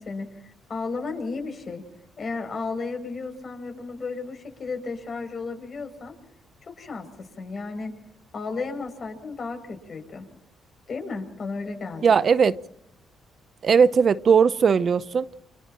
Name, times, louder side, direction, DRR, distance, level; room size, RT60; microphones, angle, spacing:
voice 1, 0.0-1.8 2.2-6.1 6.6-7.9 8.3-10.3 10.9-12.2, left 4 dB, 45° left, 7.1 m, -34 dB
voice 2, 12.0-12.6 13.6-15.3, right 6 dB, 50° right, 0.7 m, -18 dB
30.0 x 29.0 x 3.0 m
cardioid pair, 90°, 0 cm